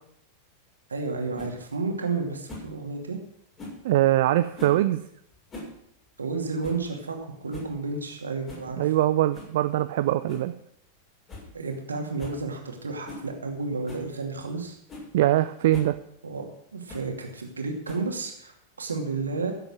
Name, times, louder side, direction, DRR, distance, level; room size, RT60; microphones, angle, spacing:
voice 1, 0.9-3.2 6.2-8.9 11.5-14.8 16.2-19.5, right 3 dB, 75° right, 2 dB, 2.6 m, -32 dB
sound 1, 1.4-1.5 2.5-2.7 3.6-3.8 4.5-4.8 5.3-5.8 6.0-6.1 6.6-6.9 7.2-7.3 7.5-7.8 8.5-8.7 9.3-9.6 10.3-10.5 10.9-11.0 11.3-11.5 11.8-11.9 12.2-12.4 13.0-13.3 13.9-14.1 14.6-14.7 14.9-15.1 15.7-15.9 16.9-17.1 17.9-18.2, left 2 dB, 25° left, 7.2 m, -41 dB
voice 2, 3.8-5.0 8.8-10.5 15.1-16.0, right 14 dB, 55° right, 11 dB, 0.5 m, -22 dB
15.5 x 7.9 x 6.4 m, 0.70 s
figure-of-eight pair, 90°, 0 cm